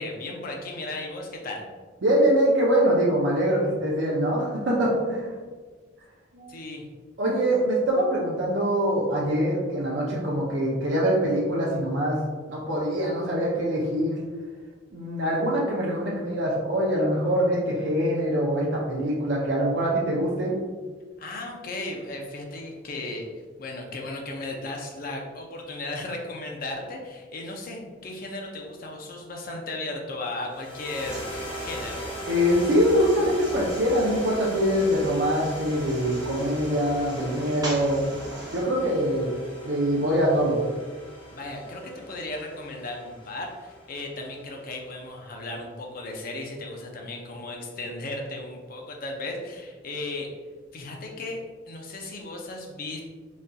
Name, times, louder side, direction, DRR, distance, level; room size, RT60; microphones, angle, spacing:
voice 1, 0.0-1.6 6.5-6.8 21.2-23.3 23.6-32.0 41.3-50.3 50.7-51.4 51.7-53.0, left 2 dB, 50° left, 1 dB, 0.5 m, -35 dB
voice 2, 2.0-5.3 6.3-6.5 7.2-12.2 12.5-14.2 14.9-20.5 32.3-38.0 38.5-39.3 39.6-40.6, equal, 65° right, -4 dB, 0.5 m, -24 dB
Ambient Downfilter, 30.5-44.9, equal, 25° left, 0.9 m, -40 dB
sound 1, 31.0-38.6, right 1 dB, 20° right, 0.8 m, -40 dB
4.0 x 2.6 x 2.3 m, 1.5 s
head